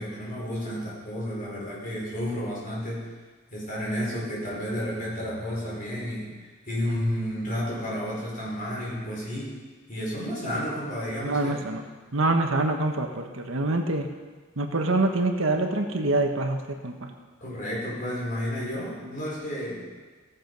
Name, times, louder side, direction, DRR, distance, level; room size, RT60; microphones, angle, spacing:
voice 1, 0.0-3.1 3.5-9.5 9.9-11.6 17.4-19.8, equal, 45° left, -5 dB, 4.6 m, -31 dB
voice 2, 11.2-11.8 12.1-14.1 14.6-16.9, right 2 dB, 90° right, 4 dB, 1.4 m, -25 dB
17.5 x 7.5 x 5.3 m, 1.4 s
head